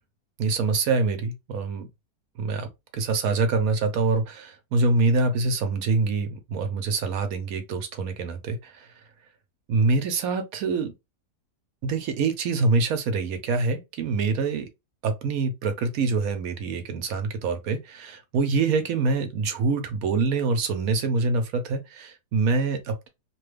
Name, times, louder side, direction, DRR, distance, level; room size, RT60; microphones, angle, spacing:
voice 1, 0.4-1.9 2.4-2.7 2.9-8.9 9.7-10.9 11.8-14.7 15.0-23.1, right 3 dB, 65° right, 1.0 m, -25 dB
2.9 x 2.3 x 3.2 m
omnidirectional pair, 1.8 m